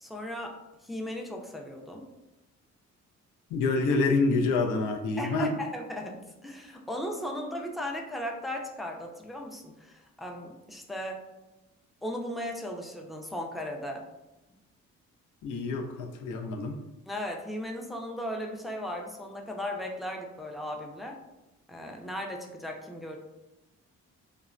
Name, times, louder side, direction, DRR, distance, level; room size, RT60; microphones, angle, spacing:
voice 1, 0.0-2.0 5.2-11.2 12.0-14.0 17.1-21.2 21.7-23.2, left 1 dB, ahead, 1 dB, 0.3 m, -37 dB
voice 2, 3.5-5.6 15.4-16.8, left 3 dB, 85° left, 3 dB, 0.5 m, -27 dB
3.2 x 2.0 x 2.4 m, 0.99 s
cardioid pair, 90°, 30 cm